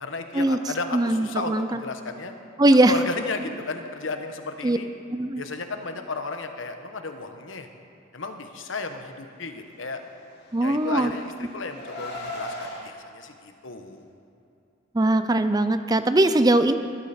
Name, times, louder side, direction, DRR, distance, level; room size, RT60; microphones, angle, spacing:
voice 1, 0.0-2.3 2.8-4.9 5.3-7.7 8.1-10.0 10.6-14.1, left 3 dB, 85° left, 6 dB, 1.1 m, -34 dB
voice 2, 0.9-1.8 2.6-2.9 4.6-4.8 5.1-5.4 10.5-11.1 14.9-16.8, right 1 dB, 20° right, 10 dB, 0.5 m, -20 dB
Car, 10.3-12.8, left 1 dB, 55° left, 2.9 m, -37 dB
19.5 x 12.0 x 4.4 m, 2.5 s
head